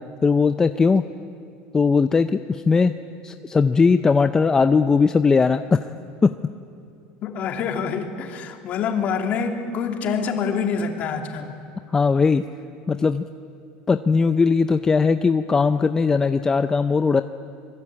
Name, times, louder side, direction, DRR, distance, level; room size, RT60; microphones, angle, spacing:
voice 1, 0.2-1.0 1.7-2.9 3.2-5.8 6.2-6.3 11.9-12.4 12.9-13.2 13.9-17.2, left 4 dB, 15° left, 9 dB, 0.5 m, -19 dB
voice 2, 7.2-11.5, left 6 dB, 45° left, 4 dB, 2.8 m, -26 dB
26.0 x 22.5 x 8.7 m, 2.5 s
cardioid pair, 140°, 4 cm